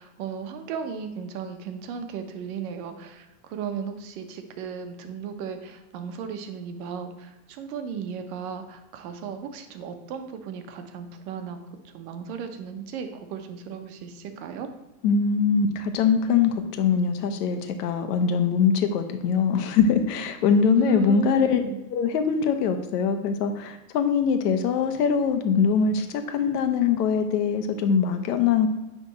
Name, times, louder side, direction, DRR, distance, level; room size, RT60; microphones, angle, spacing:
voice 1, 0.0-11.6 11.9-14.7 20.7-21.8, right 6 dB, 65° right, 7 dB, 1.1 m, -35 dB
voice 2, 15.0-21.6 21.9-28.7, left 6 dB, 80° left, 7 dB, 1.1 m, -22 dB
9.8 x 3.6 x 4.3 m, 1.0 s
supercardioid pair, 120°, 47 cm